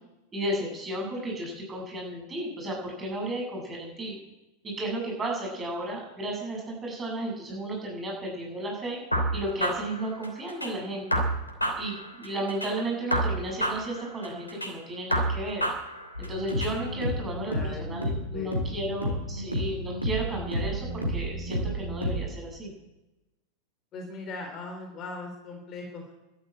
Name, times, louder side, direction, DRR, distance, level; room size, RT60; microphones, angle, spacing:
voice 1, 0.3-4.2 4.6-9.0 9.3-11.0 11.8-15.6 16.2-22.7, right 1 dB, 20° right, -1 dB, 7.7 m, -33 dB
sound 1, 9.1-10.7 11.1-12.7 13.1-14.7 15.1-16.7, right 1 dB, 85° left, 3.2 m, -29 dB
sound 2, 16.1-22.2, equal, 85° right, 3.9 m, -31 dB
voice 2, 17.2-17.8 18.3-18.5 23.9-26.1, left 3 dB, 30° left, 3 dB, 3.7 m, -39 dB
12.5 x 12.0 x 8.7 m, 1.0 s
figure-of-eight pair, 90°, 0 cm